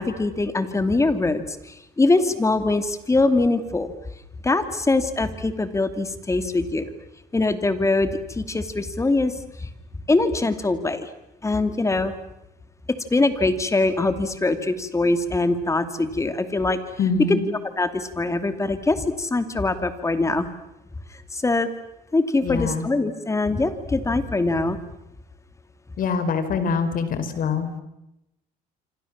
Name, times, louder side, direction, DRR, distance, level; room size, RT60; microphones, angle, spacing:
voice 1, 0.0-3.9 4.4-6.9 7.3-9.7 10.1-11.1 11.4-12.1 13.1-16.8 17.3-17.4 17.8-20.5 21.3-21.7 22.1-24.8, left 2 dB, 15° left, 10 dB, 2.7 m, -23 dB
voice 2, 17.0-17.4 22.4-22.9 26.0-27.7, left 5 dB, 55° left, 11 dB, 4.5 m, -24 dB
27.0 x 26.0 x 7.4 m, 0.88 s
cardioid pair, 110°, 17 cm